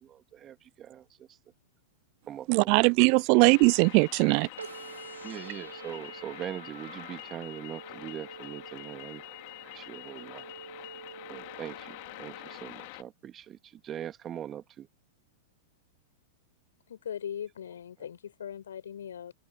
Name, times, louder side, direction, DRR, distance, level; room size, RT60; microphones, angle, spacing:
voice 1, 0.0-1.3 2.3-2.9 5.2-9.4 9.6-10.4 11.3-14.9, right 10 dB, 30° right, 2.7 m, -42 dB
voice 2, 2.5-4.5, right 35 dB, 45° right, 0.4 m, -21 dB
sound 1, 3.5-13.0, left 28 dB, 50° left, 3.4 m, -46 dB
sound 2, 4.6-12.6, right 5 dB, 80° right, 1.6 m, -48 dB
voice 3, 16.9-19.3, left 9 dB, 70° left, 4.7 m, -39 dB
figure-of-eight pair, 100°, 0 cm